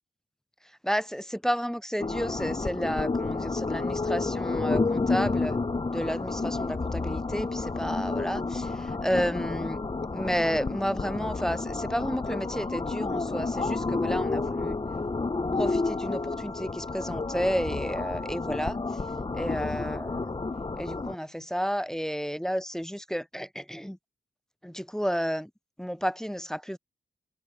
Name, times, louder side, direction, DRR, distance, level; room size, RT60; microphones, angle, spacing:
voice 1, 0.8-5.6 5.9-9.8 10.1-14.8 15.6-18.8 19.3-20.2 20.8-24.0 24.6-25.5 25.8-26.8, equal, 5° left, 0.4 m, -31 dB
sound 1, 2.0-21.2, left 3 dB, 30° left, 0.9 m, -30 dB
cardioid pair, 45°, 18 cm